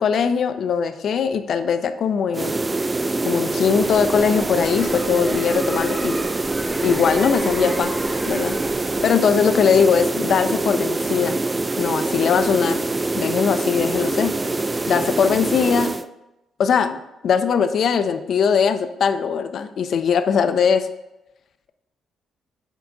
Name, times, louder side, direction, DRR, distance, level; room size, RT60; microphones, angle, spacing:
voice 1, 0.0-2.5 3.3-6.1 6.8-7.9 8.3-11.4 11.8-12.8 13.2-14.3 14.9-15.9 16.6-20.9, left 6 dB, 60° left, 10 dB, 0.5 m, -20 dB
sound 1, 2.3-16.1, right 2 dB, 20° right, 0.3 m, -24 dB
sound 2, 3.7-9.1, equal, 5° right, 1.2 m, -35 dB
7.3 x 4.0 x 3.7 m, 0.95 s
cardioid pair, 90°, 0 cm